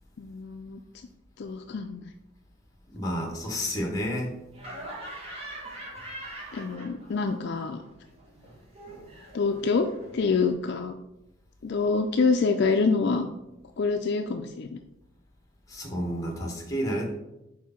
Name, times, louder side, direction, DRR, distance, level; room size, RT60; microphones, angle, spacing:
voice 1, 0.2-0.8 1.4-2.1 6.5-7.8 9.3-9.9 10.1-11.0 11.6-13.3 13.8-14.8, left 4 dB, 55° left, 6 dB, 0.4 m, -26 dB
voice 2, 2.9-4.3 15.7-17.1, equal, 15° left, 1 dB, 1.2 m, -30 dB
Laughter, 4.5-7.3 7.6-10.5, right 1 dB, 30° right, 1.4 m, -43 dB
4.7 x 4.4 x 5.7 m, 0.91 s
head